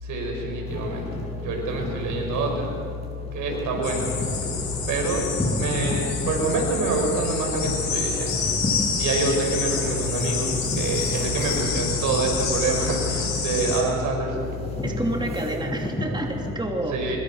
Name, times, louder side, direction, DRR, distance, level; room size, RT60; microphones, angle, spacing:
voice 1, 0.0-2.7 3.3-4.2 4.9-8.4 9.0-14.5 16.9-17.2, right 2 dB, 80° right, 1 dB, 5.7 m, -26 dB
sound 1, 0.7-16.5, left 1 dB, 20° left, 7.5 m, -33 dB
sound 2, 3.8-13.8, left 5 dB, 65° left, 5.8 m, -28 dB
voice 2, 14.8-17.2, right 1 dB, 15° right, 1 dB, 3.2 m, -29 dB
25.0 x 23.0 x 5.7 m, 2.3 s
cardioid pair, 90°, 30 cm